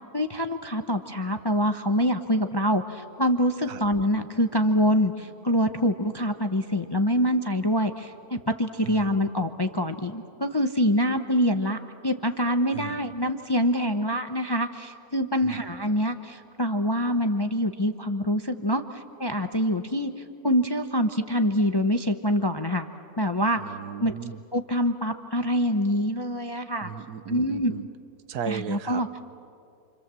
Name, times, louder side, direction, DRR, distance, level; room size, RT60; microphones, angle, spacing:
voice 1, 0.1-20.1 20.4-22.9 23.2-23.6 24.0-24.2 24.5-26.9 27.3-27.7 28.5-29.1, equal, 20° left, 7 dB, 0.6 m, -25 dB
voice 2, 23.6-24.4 26.8-27.8 28.3-29.2, right 8 dB, 80° right, 12 dB, 1.4 m, -36 dB
28.0 x 26.5 x 7.6 m, 2.5 s
omnidirectional pair, 1.7 m